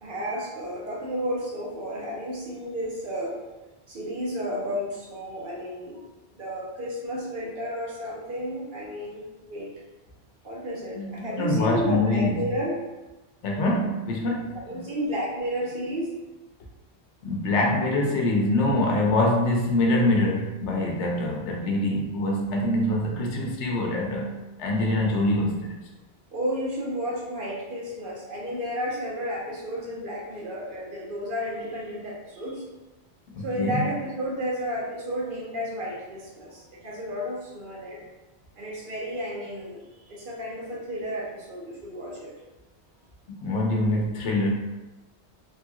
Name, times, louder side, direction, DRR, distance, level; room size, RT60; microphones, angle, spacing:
voice 1, 0.0-3.4 3.9-6.0 6.3-9.7 10.4-12.8 14.5-16.1 26.3-32.6 33.4-38.0 38.6-42.3, equal, 55° right, -3 dB, 0.9 m, -32 dB
voice 2, 11.0-12.4 13.4-14.8 17.2-25.8 33.3-33.8 43.4-44.5, left 1 dB, 90° left, 0 dB, 1.0 m, -24 dB
3.3 x 2.3 x 2.8 m, 1.1 s
omnidirectional pair, 1.1 m